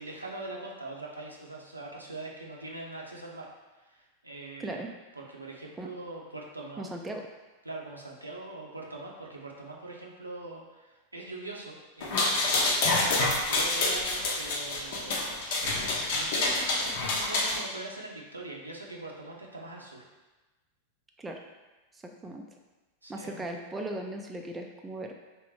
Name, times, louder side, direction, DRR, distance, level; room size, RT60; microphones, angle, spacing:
voice 1, 0.0-3.5 3.8-4.8 5.1-6.9 7.6-12.9 13.3-15.6 16.1-20.0 23.0-23.5, right 2 dB, 80° right, -2 dB, 0.7 m, -42 dB
voice 2, 4.6-4.9 5.8-5.9 6.8-7.3 21.2-21.4 22.0-22.4 23.1-25.1, right 1 dB, 10° right, 2 dB, 0.4 m, -37 dB
sound 1, 12.0-17.6, left 2 dB, 50° left, 0.8 m, -27 dB
3.5 x 3.0 x 4.6 m, 1.2 s
figure-of-eight pair, 90°, 0 cm